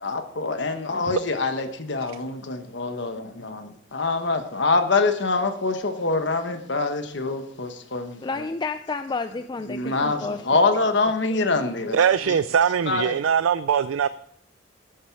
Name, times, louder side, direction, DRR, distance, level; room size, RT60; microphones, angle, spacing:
voice 1, 0.0-8.2 9.7-12.0 12.2-12.3 12.9-13.1, left 3 dB, 60° left, 1.2 m, -25 dB
voice 2, 8.2-10.9, left 3 dB, 20° left, 0.3 m, -31 dB
voice 3, 11.9-14.1, right 7 dB, 85° right, 0.4 m, -21 dB
13.0 x 8.6 x 4.6 m
head